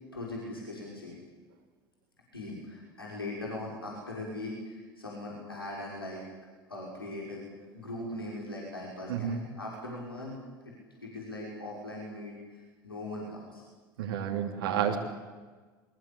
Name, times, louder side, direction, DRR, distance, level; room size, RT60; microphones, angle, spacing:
voice 1, 0.1-1.2 2.3-6.2 6.7-7.4 7.7-10.7 11.0-13.6, left 1 dB, 85° left, -3 dB, 5.9 m, -40 dB
voice 2, 14.0-15.0, right 9 dB, 65° right, 0 dB, 3.2 m, -30 dB
23.0 x 22.0 x 8.7 m, 1.4 s
figure-of-eight pair, 70°, 12 cm